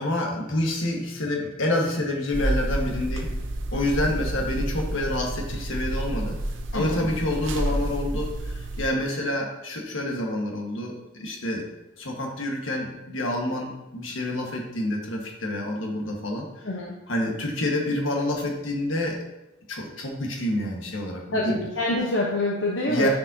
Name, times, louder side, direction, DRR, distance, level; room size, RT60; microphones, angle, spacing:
voice 1, 0.0-3.3 3.7-6.3 6.7-11.7 12.0-16.7 17.1-19.2 19.7-21.6 22.9-23.1, left 1 dB, 85° left, 0 dB, 1.5 m, -28 dB
sound 1, 2.3-8.9, right 1 dB, 70° right, 0.7 m, -29 dB
voice 2, 16.6-17.0 21.3-23.1, left 2 dB, 65° left, -2 dB, 0.9 m, -26 dB
9.8 x 5.3 x 2.8 m, 0.93 s
head